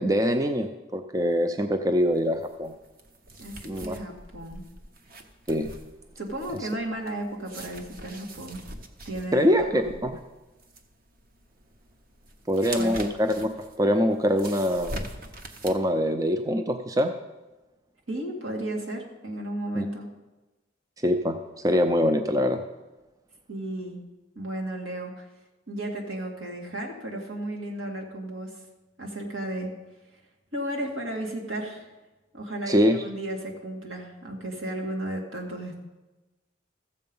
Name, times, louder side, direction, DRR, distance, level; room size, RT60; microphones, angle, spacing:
voice 1, 0.0-2.7 3.6-4.0 5.5-5.7 9.3-10.1 12.5-13.5 13.8-15.0 15.6-17.1 19.7-19.9 21.0-21.4 21.6-22.6 32.7-33.0, equal, 15° right, 7 dB, 0.4 m, -24 dB
sound 1, 2.0-15.7, right 1 dB, 45° right, 0.9 m, -43 dB
voice 2, 3.4-4.6 6.2-8.6 9.1-10.0 12.6-13.1 18.1-20.1 23.5-24.0 24.4-25.3 25.7-28.6 29.0-29.7 30.1-30.2 30.5-31.9 32.3-35.8, right 1 dB, 75° right, 0 dB, 2.2 m, -34 dB
14.0 x 7.6 x 5.4 m, 1.1 s
head